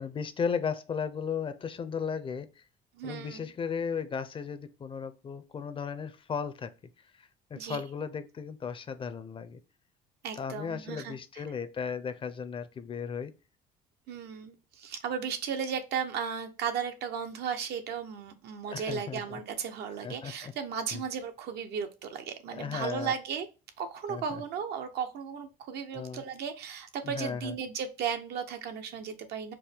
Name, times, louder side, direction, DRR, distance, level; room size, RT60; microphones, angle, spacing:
voice 1, 0.0-2.6 3.0-6.7 7.2-9.6 10.4-13.3 18.7-19.4 20.0-20.5 20.9-21.0 22.5-23.1 24.1-24.4 25.9-26.2 27.0-27.5, left 6 dB, 30° left, 0.4 m, -35 dB
voice 2, 2.9-3.5 7.5-7.8 10.2-11.4 14.1-23.5 23.8-29.5, right 7 dB, 75° right, 0.7 m, -35 dB
4.4 x 2.2 x 3.3 m
cardioid pair, 110°, 17 cm